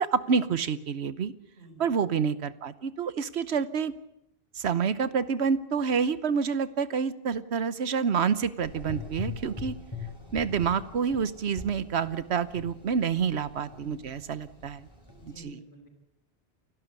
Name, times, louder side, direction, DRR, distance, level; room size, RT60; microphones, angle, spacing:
voice 1, 0.0-1.3 1.8-3.9 4.6-9.7 10.3-14.9 15.4-15.6, right 6 dB, 80° right, 15 dB, 1.2 m, -28 dB
voice 2, 1.6-1.9 13.8-14.1 15.2-15.9, right 1 dB, 55° left, 3 dB, 5.1 m, -50 dB
Gurgling / Engine, 8.6-15.4, left 4 dB, 25° left, 4.4 m, -42 dB
29.0 x 12.0 x 8.2 m, 0.81 s
omnidirectional pair, 1.1 m